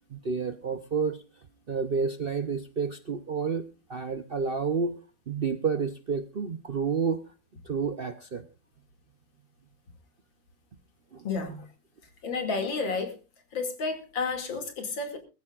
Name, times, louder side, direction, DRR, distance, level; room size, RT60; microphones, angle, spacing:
voice 1, 0.1-1.2 1.7-4.9 5.3-7.2 7.6-8.4 11.1-11.2, right 5 dB, 50° right, 10 dB, 0.7 m, -30 dB
voice 2, 11.2-11.7 12.2-13.1 13.5-15.2, left 4 dB, 90° left, 6 dB, 3.2 m, -31 dB
22.0 x 14.5 x 2.4 m, 0.29 s
omnidirectional pair, 2.0 m